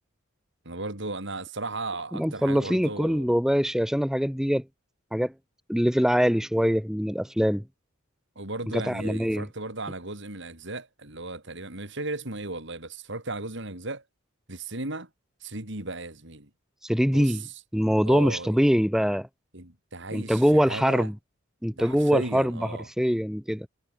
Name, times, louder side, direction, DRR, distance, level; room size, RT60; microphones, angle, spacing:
voice 1, 0.7-3.3 8.4-14.0 14.5-15.1 15.4-16.5 17.1-17.6 18.0-18.6 19.5-21.1 21.7-22.9, right 2 dB, 60° right, 5.3 m, -35 dB
voice 2, 2.1-4.6 5.1-5.3 5.7-7.6 8.7-9.5 16.8-17.4 17.7-19.3 20.1-21.1 21.6-22.5 23.0-23.7, equal, 5° right, 2.0 m, -23 dB
head